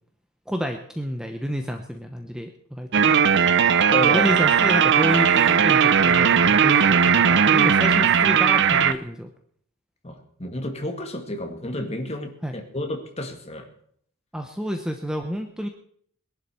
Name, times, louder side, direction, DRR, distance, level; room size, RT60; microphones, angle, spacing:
voice 1, 0.5-2.9 4.0-7.0 7.3-9.3 12.4-12.5 14.3-15.7, equal, 5° right, 5 dB, 0.8 m, -29 dB
sound 1, 2.9-8.9, right 7 dB, 55° right, 0.6 m, -18 dB
voice 2, 3.9-4.3 10.0-13.7, equal, 30° left, 4 dB, 1.9 m, -31 dB
21.5 x 11.0 x 4.4 m, 0.63 s
head